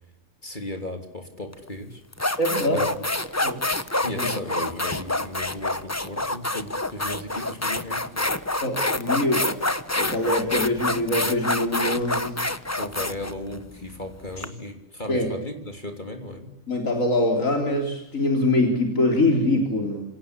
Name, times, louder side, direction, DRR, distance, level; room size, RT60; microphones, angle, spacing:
voice 1, 0.4-2.0 2.3-2.4 2.7-3.1 4.0-8.3 12.8-16.6, left 1 dB, 35° left, 5 dB, 3.4 m, -35 dB
sound 1, 1.5-1.7 2.1-14.5, left 2 dB, 15° left, 1.1 m, -27 dB
voice 2, 2.4-2.8 3.4-3.6 4.1-4.3 8.6-9.6 10.0-12.4 14.4-14.5 15.1-15.3 16.7-20.0, left 1 dB, 80° left, 2 dB, 4.1 m, -23 dB
28.0 x 26.0 x 8.3 m, 0.89 s
omnidirectional pair, 1.4 m